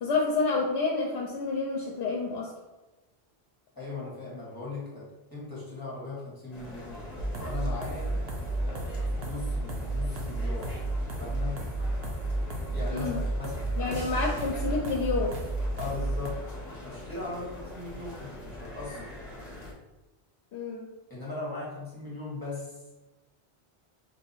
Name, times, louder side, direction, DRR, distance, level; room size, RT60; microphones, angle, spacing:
voice 1, 0.0-2.5 12.9-13.2 13.8-15.4 20.5-20.9, left 3 dB, 80° left, 0 dB, 0.8 m, -29 dB
voice 2, 3.7-8.2 8.6-10.8 11.2-11.7 12.7-14.1 15.8-16.4 16.7-19.2 21.1-22.8, left 3 dB, 20° left, -7 dB, 1.3 m, -39 dB
sound 1, 6.5-19.7, left 2 dB, 40° left, 0.9 m, -43 dB
sound 2, 7.2-16.3, right 2 dB, 70° right, 0.9 m, -32 dB
3.5 x 2.6 x 4.1 m, 1.1 s
omnidirectional pair, 1.1 m